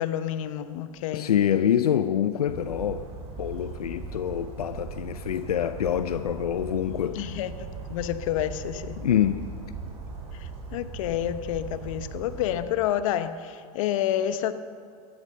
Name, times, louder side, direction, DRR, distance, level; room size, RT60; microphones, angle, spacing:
voice 1, 0.0-1.3 7.1-9.1 10.3-14.5, left 11 dB, 60° left, 1.0 m, -29 dB
voice 2, 1.1-3.1 3.4-7.2 9.0-9.4, left 10 dB, 90° left, 0.6 m, -26 dB
Bird vocalization bird call bird song, 2.5-12.6, right 4 dB, 35° right, 3.7 m, -39 dB
14.0 x 13.0 x 6.6 m
hypercardioid pair, 110°, 19 cm